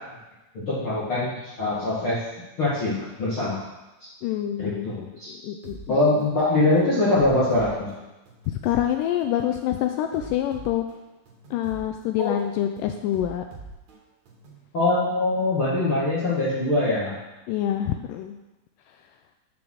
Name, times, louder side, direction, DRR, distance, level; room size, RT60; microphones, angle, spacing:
voice 1, 0.5-2.2 2.6-3.6 4.0-4.1 4.6-5.3 5.9-7.9 12.2-12.3 14.7-17.2, left 2 dB, 45° left, -9 dB, 2.1 m, -23 dB
voice 2, 4.2-4.9 5.3-6.0 8.5-10.8 11.5-13.4 17.5-18.4, left 11 dB, 90° left, 5 dB, 1.9 m, -26 dB
sound 1, 5.6-5.9 6.4-6.6 7.1-8.9 9.4-9.6 10.1-11.9 12.4-12.6 13.1-14.6, right 3 dB, 55° right, 2.4 m, -43 dB
7.0 x 6.9 x 6.4 m, 1.0 s
omnidirectional pair, 4.4 m